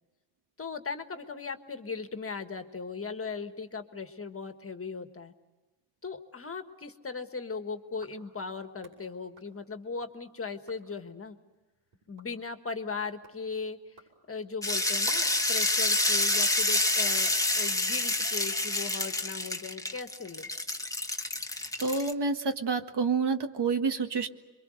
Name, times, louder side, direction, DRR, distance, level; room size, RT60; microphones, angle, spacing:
voice 1, 0.6-5.3 6.0-11.4 12.1-14.0 14.3-20.5, left 4 dB, 30° left, 7 dB, 1.6 m, -38 dB
sound 1, 7.9-10.2 10.5-11.0 11.5-15.5, right 3 dB, 80° right, 7.9 m, -55 dB
sound 2, 14.6-22.1, left 2 dB, 5° left, 1.2 m, -28 dB
voice 2, 21.8-24.3, right 4 dB, 60° right, 7 dB, 1.7 m, -28 dB
27.0 x 23.5 x 6.5 m, 1.2 s
wide cardioid pair, 125°, 45 cm